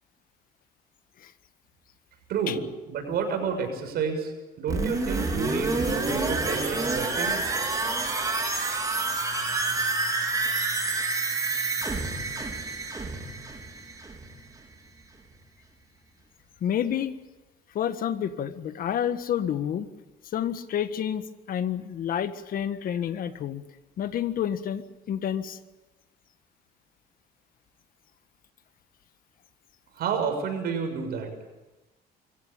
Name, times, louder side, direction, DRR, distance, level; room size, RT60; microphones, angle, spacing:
voice 1, 2.3-2.6 2.9-4.3 4.6-7.4 30.0-31.3, right 6 dB, 70° right, 5 dB, 6.7 m, -30 dB
sound 1, 4.7-14.4 14.7-14.8, right 3 dB, 20° right, 4.2 m, -28 dB
voice 2, 16.6-17.1 17.7-19.9 20.3-23.6 24.0-24.8 25.1-25.6, left 9 dB, 55° left, 11 dB, 1.6 m, -29 dB
25.5 x 15.5 x 9.1 m, 1.1 s
cardioid pair, 110°, 17 cm